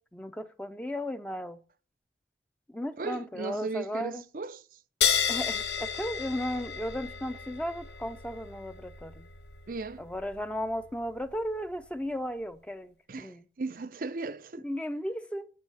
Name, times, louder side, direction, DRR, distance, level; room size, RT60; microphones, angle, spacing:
voice 1, 0.1-1.6 2.7-4.2 5.3-9.3 10.0-13.4 14.6-15.5, equal, 5° left, 0.6 m, -35 dB
voice 2, 3.0-4.8 9.7-10.0 13.1-14.6, right 3 dB, 50° right, 0.6 m, -37 dB
sound 1, 5.0-12.0, left 8 dB, 75° left, 1.2 m, -33 dB
9.5 x 7.5 x 7.0 m
head